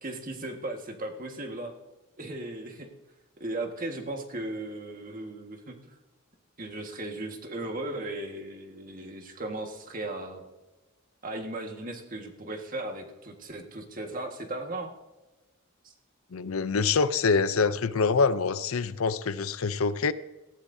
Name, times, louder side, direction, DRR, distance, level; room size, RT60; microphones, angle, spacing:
voice 1, 0.0-1.7 2.2-2.9 3.4-6.0 6.6-10.4 11.2-14.9 15.8-15.9, right 2 dB, 40° right, 4 dB, 1.6 m, -36 dB
voice 2, 16.3-20.1, left 4 dB, 75° left, 14 dB, 0.6 m, -25 dB
18.5 x 15.0 x 2.7 m, 1.1 s
head